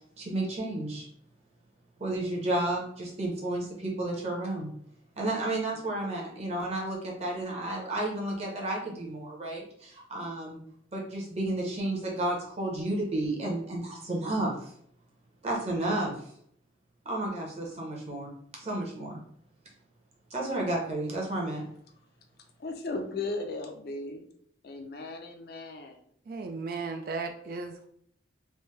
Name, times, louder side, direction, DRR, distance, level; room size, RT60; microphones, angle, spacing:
voice 1, 0.2-1.1 2.0-4.7 5.2-10.6 10.9-14.7 15.4-16.1 17.0-18.3 18.6-19.2 20.3-21.6, right 1 dB, 35° right, -2 dB, 0.9 m, -32 dB
voice 2, 22.6-24.3 24.6-26.0, left 3 dB, 55° left, 5 dB, 0.5 m, -36 dB
voice 3, 26.3-27.9, right 4 dB, 50° right, 5 dB, 0.3 m, -35 dB
3.3 x 2.6 x 3.2 m, 0.66 s
head